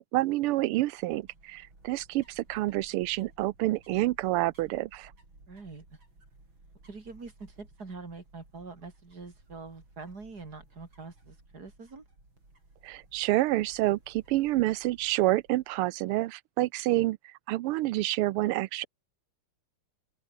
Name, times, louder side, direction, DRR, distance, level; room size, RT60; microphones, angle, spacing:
voice 1, 0.0-5.1 12.8-17.2 17.5-18.9, right 17 dB, 85° right, 1.6 m, -28 dB
sound 1, 0.7-16.0, right 2 dB, 60° right, 9.0 m, -58 dB
voice 2, 5.5-6.0 6.8-12.0, right 4 dB, 45° right, 3.8 m, -45 dB
open air
omnidirectional pair, 2.4 m